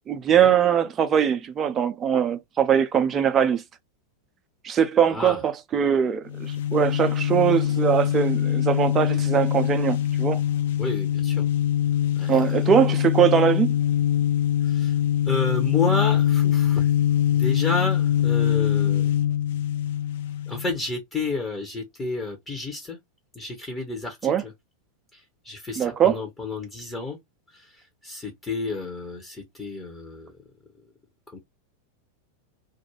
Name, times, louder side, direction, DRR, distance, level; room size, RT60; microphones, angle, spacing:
voice 1, 0.1-3.6 4.6-10.4 12.3-13.7 24.2-24.4 25.8-26.2, right 8 dB, 25° right, 0.4 m, -21 dB
voice 2, 5.1-5.4 10.8-11.4 12.2-12.6 14.6-15.0 15.3-16.9 17.3-19.1 20.5-23.0 23.3-24.5 25.1-27.2 27.5-27.7 28.0-30.3 31.3-31.4, left 3 dB, 15° left, 0.8 m, -31 dB
sound 1, 6.3-20.8, left 11 dB, 55° left, 0.3 m, -23 dB
2.3 x 2.2 x 3.0 m
figure-of-eight pair, 90°, 0 cm